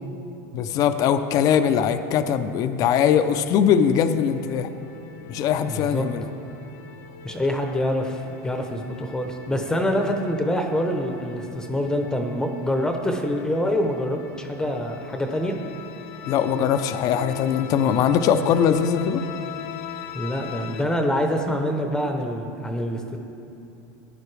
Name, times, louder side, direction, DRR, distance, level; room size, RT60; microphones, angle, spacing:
voice 1, 0.5-4.7 5.3-6.2 16.3-19.2, left 8 dB, 45° left, 10 dB, 0.5 m, -21 dB
Suspense Strings (Cinematic), 3.5-20.8, left 8 dB, 85° left, 0.7 m, -41 dB
voice 2, 5.7-6.1 7.2-15.6 20.1-23.2, equal, 5° left, 4 dB, 0.7 m, -25 dB
14.5 x 10.5 x 3.3 m, 2.8 s
supercardioid pair, 130°, 9 cm